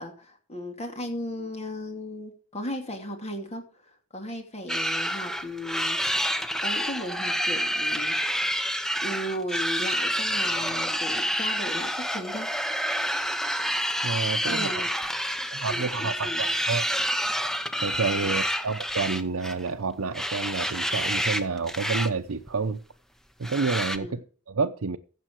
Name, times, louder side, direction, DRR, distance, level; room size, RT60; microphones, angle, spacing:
voice 1, 0.0-6.2 6.6-8.4 9.0-12.5 14.5-15.0 15.4-16.5 18.2-18.3 23.9-24.2, left 1 dB, 30° left, 2.5 m, -36 dB
sound 1, 4.7-19.7 20.1-21.4 21.7-22.1 22.4-22.5 23.4-24.0, equal, ahead, 0.9 m, -28 dB
voice 2, 14.0-14.8 15.5-16.8 17.8-22.8 23.4-25.0, right 4 dB, 70° right, 0.7 m, -29 dB
15.0 x 7.6 x 4.6 m
head